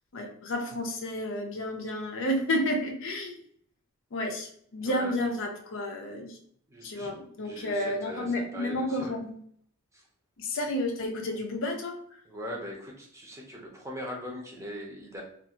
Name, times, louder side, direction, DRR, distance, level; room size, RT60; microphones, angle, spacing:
voice 1, 0.1-3.4 4.1-6.4 6.8-9.3 10.4-12.0, left 1 dB, 60° left, 3 dB, 0.5 m, -31 dB
voice 2, 4.8-5.2 6.7-7.1 7.4-9.2 9.9-10.0 12.2-15.2, equal, 15° right, -1 dB, 0.6 m, -40 dB
2.6 x 2.5 x 2.8 m, 0.62 s
head